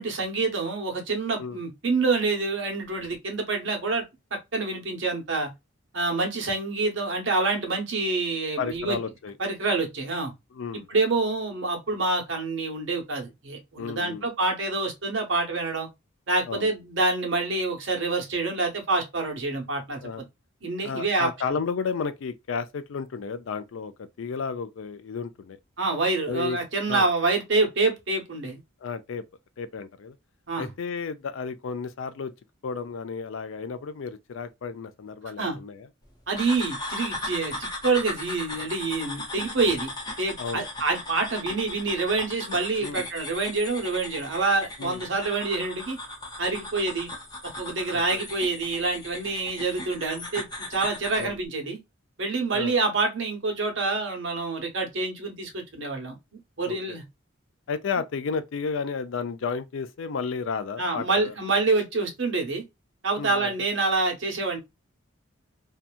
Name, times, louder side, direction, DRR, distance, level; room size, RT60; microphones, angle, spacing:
voice 1, 0.0-4.0 4.3-5.5 5.9-9.0 9.4-10.3 10.9-15.9 16.3-20.0 20.6-21.3 25.8-28.6 30.5-30.7 35.4-35.6 36.3-39.9 40.2-46.0 46.4-47.1 47.4-51.8 52.2-56.2 56.6-57.0 60.8-62.6 63.0-64.6, right 3 dB, 65° right, 1.0 m, -27 dB
voice 2, 8.6-9.3 10.5-10.9 13.8-14.3 16.5-16.7 20.0-20.2 20.8-25.6 26.3-26.6 26.9-27.1 28.8-29.2 29.6-30.2 30.6-32.3 32.6-35.9 40.4-40.7 42.8-43.1 44.8-45.0 47.9-48.0 51.2-51.3 52.5-52.8 56.6-57.0 57.7-61.3 63.2-63.5, left 5 dB, 75° left, 0.4 m, -32 dB
sound 1, 36.4-51.3, left 2 dB, 20° left, 0.8 m, -37 dB
2.8 x 2.3 x 2.3 m
head